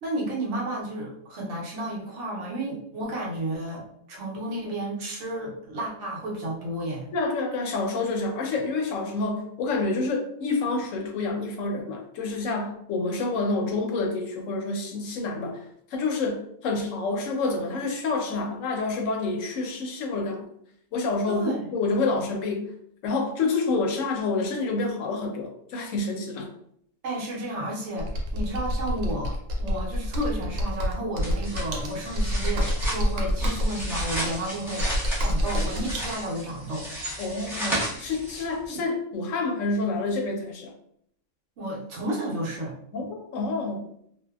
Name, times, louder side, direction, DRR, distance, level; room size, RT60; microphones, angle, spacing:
voice 1, 0.0-7.1 21.3-21.6 27.0-34.9 35.2-36.9 38.7-38.8 41.6-42.7, right 1 dB, 65° right, -3 dB, 1.0 m, -32 dB
voice 2, 7.1-15.7 15.9-20.5 20.9-22.7 23.0-26.5 37.2-40.7 42.9-43.9, left 3 dB, 75° left, 3 dB, 0.9 m, -28 dB
Computer keyboard, 28.0-36.1, equal, 90° right, 1.0 m, -28 dB
sound 1, 31.2-38.7, equal, ahead, 0.6 m, -34 dB
2.6 x 2.2 x 2.2 m, 0.70 s
omnidirectional pair, 1.4 m